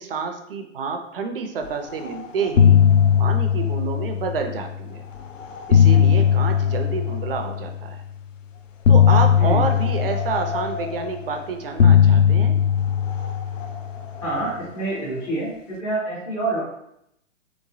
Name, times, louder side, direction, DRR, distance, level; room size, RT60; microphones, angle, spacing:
voice 1, 0.0-2.8 3.2-5.1 5.7-8.0 8.9-12.6, right 5 dB, 45° right, 5 dB, 0.5 m, -28 dB
sound 1, 1.9-2.1 2.4-4.7 5.4-7.8 8.8-11.3 11.8-14.4, left 8 dB, 75° left, 0.5 m, -18 dB
voice 2, 14.2-16.6, right 2 dB, 5° left, -9 dB, 0.3 m, -27 dB
3.2 x 3.0 x 2.6 m, 0.78 s
figure-of-eight pair, 120°, 39 cm